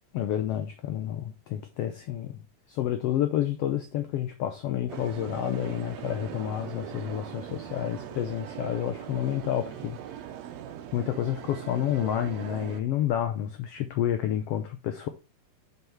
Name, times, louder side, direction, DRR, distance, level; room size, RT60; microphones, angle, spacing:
voice 1, 0.1-10.0 10.9-15.1, left 11 dB, 85° left, 1.3 m, -29 dB
sound 1, 4.9-12.8, right 10 dB, 75° right, 1.8 m, -40 dB
5.8 x 5.5 x 4.5 m
omnidirectional pair, 3.5 m